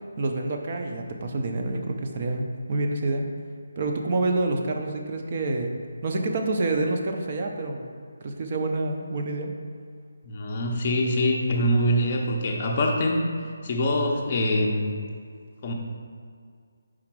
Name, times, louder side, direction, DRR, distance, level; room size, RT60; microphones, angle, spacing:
voice 1, 0.2-3.2 3.8-5.7 6.0-7.9 8.2-9.5, right 2 dB, 25° right, 3 dB, 0.5 m, -27 dB
voice 2, 10.2-13.2 13.6-14.9 15.6-15.7, left 1 dB, 20° left, -1 dB, 0.6 m, -24 dB
4.9 x 4.2 x 6.0 m, 2.1 s
hypercardioid pair, 180°, 0 cm